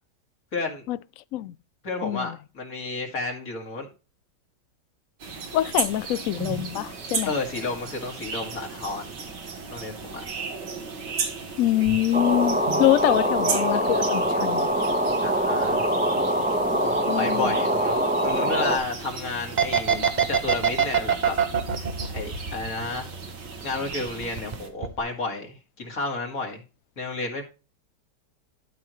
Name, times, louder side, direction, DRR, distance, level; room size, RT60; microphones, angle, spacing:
voice 1, 0.5-0.8 1.8-3.9 7.3-9.1 9.7-10.2 15.2-15.9 16.6-21.4 21.8-21.9 22.1-23.1 23.6-26.6 27.0-27.4, left 3 dB, 50° left, 2.4 m, -31 dB
voice 2, 2.0-2.3 5.5-7.3 11.6-14.7 17.1-17.5, left 14 dB, 75° left, 0.7 m, -24 dB
sound 1, 5.2-24.7, right 5 dB, 70° right, 2.2 m, -35 dB
sound 2, 12.1-18.8, right 1 dB, 5° right, 1.0 m, -24 dB
sound 3, 19.6-23.3 23.6-24.5 24.8-25.0, right 7 dB, 35° right, 0.7 m, -23 dB
12.5 x 5.6 x 3.1 m
omnidirectional pair, 1.9 m